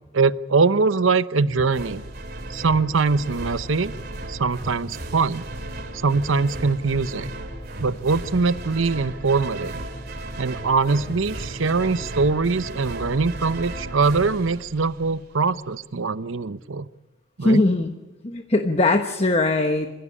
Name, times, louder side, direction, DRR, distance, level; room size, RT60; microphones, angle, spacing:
voice 1, 0.1-2.0 2.5-3.9 4.3-5.5 6.0-7.3 7.8-9.8 10.4-16.9 17.4-17.6, right 4 dB, 85° right, 15 dB, 0.8 m, -22 dB
sound 1, 1.7-15.4, right 1 dB, 50° right, 3.1 m, -35 dB
voice 2, 17.4-17.9 18.2-19.9, left 2 dB, 30° left, 6 dB, 1.2 m, -20 dB
26.5 x 16.0 x 8.5 m, 1.1 s
head